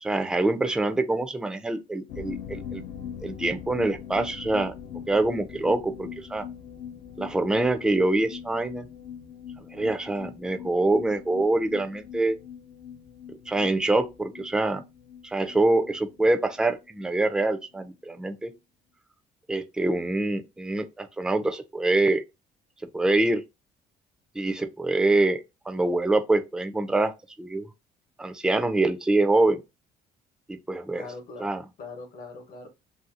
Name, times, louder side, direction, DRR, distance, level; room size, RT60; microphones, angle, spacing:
voice 1, 0.0-2.8 3.2-4.7 5.1-6.5 7.2-8.8 9.7-12.3 13.5-14.8 15.2-18.5 19.5-22.2 22.9-23.4 24.4-27.1 27.4-27.7 28.2-29.6 30.5-31.0 31.4-31.6, right 2 dB, 5° right, 0.3 m, -25 dB
sound 1, 2.1-17.5 17.7-17.8 18.1-18.2, left 8 dB, 80° left, 0.6 m, -42 dB
voice 2, 30.9-32.7, left 3 dB, 60° left, 0.9 m, -42 dB
2.6 x 2.6 x 2.5 m
cardioid pair, 110°, 17 cm